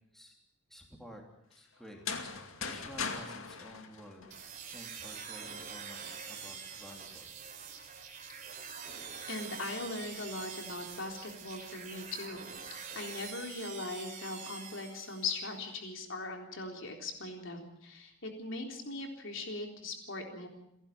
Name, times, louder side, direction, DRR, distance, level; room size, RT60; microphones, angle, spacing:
voice 1, 0.7-1.2 1.5-4.3 4.7-7.3, equal, ahead, 1 dB, 3.2 m, -52 dB
sound 1, 1.9-4.8, left 5 dB, 80° left, 2.5 m, -39 dB
sound 2, 4.3-15.5, right 6 dB, 35° right, 3.4 m, -45 dB
voice 2, 9.3-20.5, left 2 dB, 65° left, 3 dB, 3.8 m, -40 dB
30.0 x 11.5 x 8.7 m, 0.81 s
head